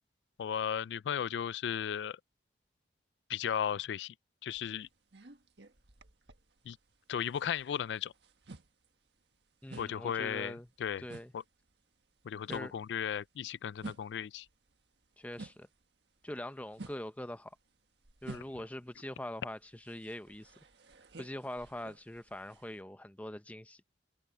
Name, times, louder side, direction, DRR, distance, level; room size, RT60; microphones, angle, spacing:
voice 1, 0.4-2.2 3.3-4.1 4.4-4.9 6.7-6.8 7.1-8.1 9.8-11.0 11.3-11.4 12.2-14.5, left 8 dB, 85° left, 0.3 m, -35 dB
sound 1, 4.5-7.0 7.2-15.8 16.2-22.8, right 2 dB, 85° right, 1.6 m, -52 dB
voice 2, 9.6-10.7 11.0-11.3 12.5-12.7 15.2-15.7 16.2-17.6 18.2-20.5 21.2-23.8, left 1 dB, 10° left, 0.6 m, -43 dB
head